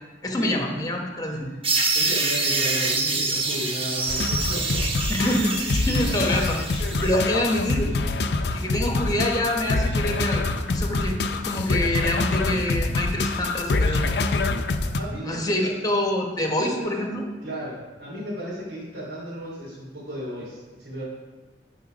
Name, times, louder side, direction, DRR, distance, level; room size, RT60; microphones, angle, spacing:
voice 1, 0.2-1.5 5.1-7.9 8.5-11.2 11.4-14.0 15.2-17.2, left 1 dB, 20° left, 2 dB, 1.2 m, -26 dB
sound 1, 1.6-7.2, right 3 dB, 30° right, 1.0 m, -26 dB
voice 2, 1.9-5.3 14.8-15.7 16.5-16.9 17.4-21.0, equal, 80° right, -9 dB, 2.9 m, -34 dB
sound 2, 4.1-15.0, left 3 dB, 70° left, 0.5 m, -25 dB
11.0 x 4.6 x 5.0 m, 1.3 s
head